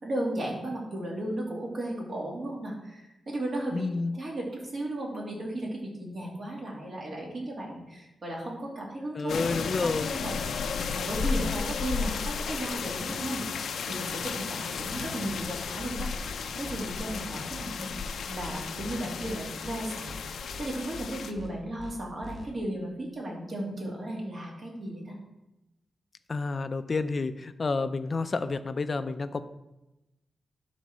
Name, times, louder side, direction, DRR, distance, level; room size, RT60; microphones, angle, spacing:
voice 1, 0.0-10.4 10.9-16.1 16.6-20.2 20.6-25.2, right 1 dB, 50° right, -2 dB, 2.9 m, -35 dB
voice 2, 3.7-4.2 9.2-10.1 11.3-11.5 26.3-29.4, left 3 dB, 40° left, 11 dB, 0.5 m, -30 dB
sound 1, 9.3-21.3, left 5 dB, 80° left, 0.6 m, -34 dB
sound 2, 15.8-15.9 16.2-16.4 16.6-16.8 17.1-17.2 17.5-17.6 17.9-18.1 18.3-18.5 18.8-19.4 19.6-19.8 20.1-20.2 20.5-20.6 20.9-21.1 21.3-21.5 21.8-21.9 22.2-22.4, left 2 dB, 10° right, 2.6 m, -43 dB
11.5 x 4.1 x 6.2 m, 0.97 s
wide cardioid pair, 110°, 0 cm